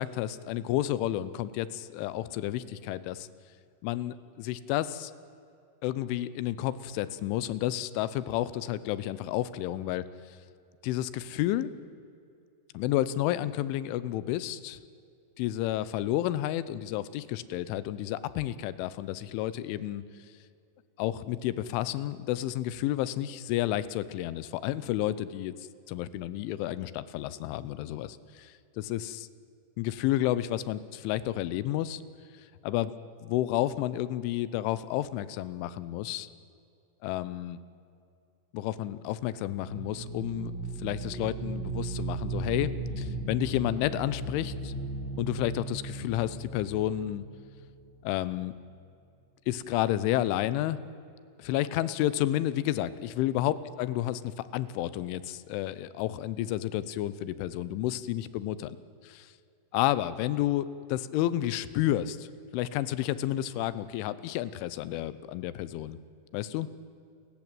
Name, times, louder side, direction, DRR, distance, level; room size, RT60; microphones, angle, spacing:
voice 1, 0.0-3.3 3.8-5.1 5.8-10.1 10.8-11.7 12.7-14.8 15.4-20.0 21.0-25.5 25.9-29.3 29.8-32.0 32.6-32.9 33.3-36.3 37.0-37.6 38.5-40.5 40.8-42.7 43.0-44.7 45.2-47.2 48.0-48.5 49.5-50.8 51.4-58.6 59.2-59.3 59.7-62.3 62.5-66.0 66.3-66.7, left 13 dB, 85° left, 16 dB, 3.2 m, -31 dB
sound 1, 39.5-48.2, right 3 dB, 50° right, 2.2 m, -36 dB
29.5 x 14.5 x 9.0 m, 2.5 s
omnidirectional pair, 5.5 m